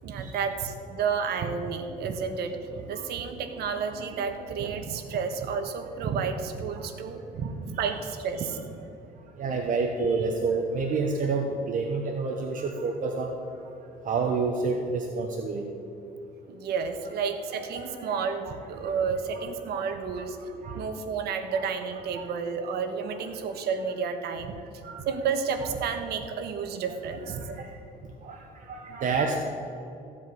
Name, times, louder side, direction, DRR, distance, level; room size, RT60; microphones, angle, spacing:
voice 1, 0.0-7.2 7.8-8.6 16.5-20.4 20.7-24.5 25.0-27.7, right 6 dB, 70° right, 7 dB, 1.3 m, -31 dB
voice 2, 7.4-7.8 9.4-13.3 14.0-15.7 17.8-18.1 18.8-18.9 19.3-19.4 20.2-20.3 20.6-20.8 21.5-21.6 22.1-22.3 24.8-25.0 27.3-27.7 28.2-29.4, right 4 dB, 50° right, 2 dB, 1.1 m, -29 dB
15.0 x 5.2 x 9.2 m, 2.7 s
cardioid pair, 110°, 17 cm